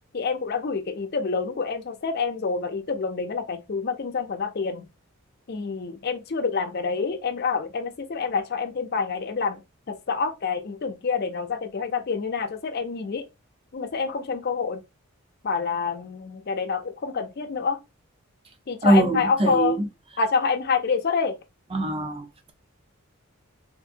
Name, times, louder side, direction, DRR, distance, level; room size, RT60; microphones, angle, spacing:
voice 1, 0.1-4.8 5.5-9.6 9.9-13.3 13.7-14.8 15.4-17.8 18.7-19.8 20.2-21.3, left 5 dB, 45° left, 0.5 m, -27 dB
voice 2, 18.8-19.9 21.7-22.5, right 1 dB, 25° right, 0.6 m, -22 dB
3.7 x 2.6 x 2.5 m
head